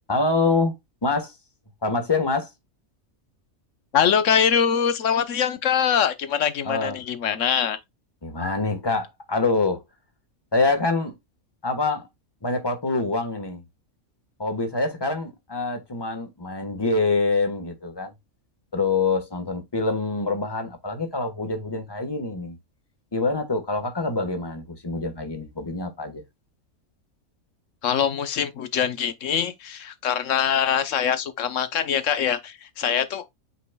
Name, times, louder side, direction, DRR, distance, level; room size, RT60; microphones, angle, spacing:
voice 1, 0.1-0.7 1.0-1.4 1.8-2.5 6.6-7.0 8.2-9.8 10.5-11.1 11.6-12.1 12.4-13.6 14.4-18.1 18.7-22.6 23.1-26.2, left 3 dB, 20° left, 1.3 m, -25 dB
voice 2, 3.9-7.8 27.8-33.3, left 8 dB, 65° left, 1.2 m, -23 dB
8.4 x 5.0 x 2.3 m
omnidirectional pair, 1.5 m